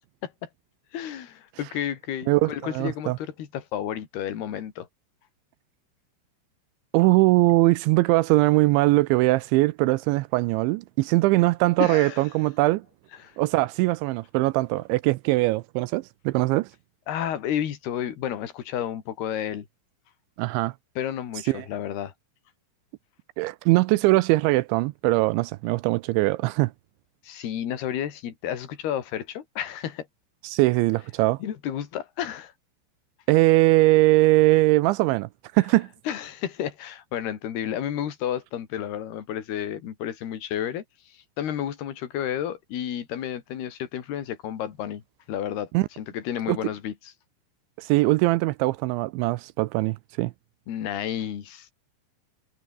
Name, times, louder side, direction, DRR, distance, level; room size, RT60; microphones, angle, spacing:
voice 1, 0.9-4.9 11.8-12.3 13.2-13.3 17.1-19.7 21.0-22.1 27.2-30.1 31.4-32.5 36.1-45.0 45.3-45.7 46.0-47.1 50.7-51.7, left 10 dB, 60° left, 4.4 m, -31 dB
voice 2, 2.3-3.2 6.9-12.8 13.4-16.7 20.4-20.7 21.5-21.7 23.4-26.7 30.4-31.4 33.3-35.9 45.7-45.9 46.5-46.6 47.8-50.3, right 20 dB, 80° right, 2.8 m, -21 dB
omnidirectional pair, 5.7 m